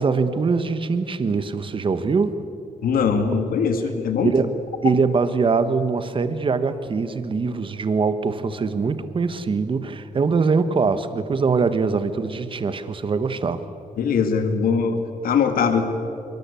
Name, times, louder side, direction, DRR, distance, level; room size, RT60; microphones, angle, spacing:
voice 1, 0.0-2.4 4.2-13.6, right 4 dB, 35° right, 11 dB, 1.4 m, -22 dB
voice 2, 2.8-4.3 14.0-15.8, left 6 dB, 80° left, 7 dB, 2.1 m, -21 dB
25.0 x 23.0 x 8.5 m, 2.7 s
cardioid pair, 125°, 15 cm